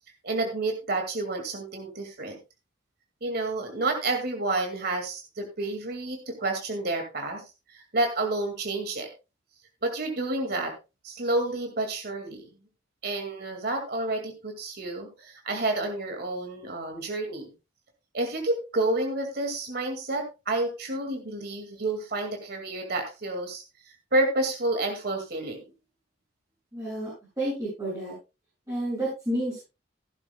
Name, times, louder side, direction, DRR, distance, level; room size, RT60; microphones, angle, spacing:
voice 1, 0.2-2.4 3.2-9.1 9.8-10.7 11.0-12.5 13.0-17.5 18.1-25.6, right 2 dB, 55° right, 4 dB, 2.2 m, -30 dB
voice 2, 26.7-28.1 28.7-29.6, right 1 dB, 15° right, -8 dB, 7.1 m, -30 dB
16.5 x 11.0 x 2.3 m, 0.28 s
head